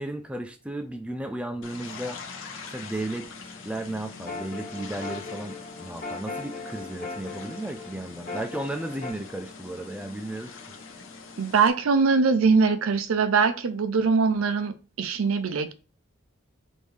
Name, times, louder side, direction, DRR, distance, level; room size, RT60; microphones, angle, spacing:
voice 1, 0.0-2.2 2.7-3.3 3.6-10.5, right 1 dB, 5° right, 0.3 m, -34 dB
sound 1, 1.6-11.7, left 4 dB, 65° left, 0.8 m, -43 dB
sound 2, 4.0-9.1, left 3 dB, 40° left, 1.4 m, -38 dB
voice 2, 11.4-15.7, right 5 dB, 80° right, 0.5 m, -22 dB
5.2 x 2.7 x 3.2 m
head